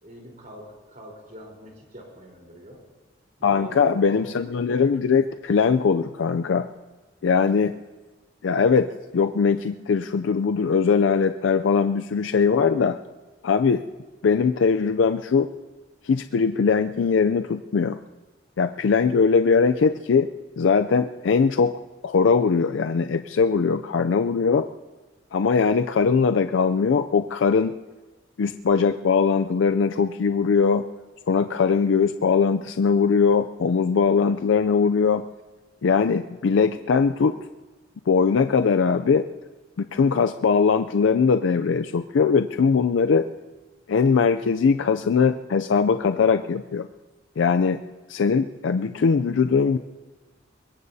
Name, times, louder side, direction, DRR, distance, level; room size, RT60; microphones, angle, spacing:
voice 1, 0.0-2.8 3.4-4.2, equal, 45° right, -1 dB, 3.9 m, -42 dB
voice 2, 3.4-6.7 7.2-7.7 8.4-13.0 13.4-13.8 14.2-15.5 16.0-18.0 18.6-20.3 20.6-21.7 22.0-24.7 25.3-27.8 28.4-30.9 31.3-35.2 35.8-37.4 38.1-39.3 39.9-43.3 43.9-46.9 47.4-47.8 48.1-49.8, left 5 dB, 85° left, 9 dB, 0.4 m, -21 dB
23.5 x 21.0 x 2.7 m, 1.2 s
head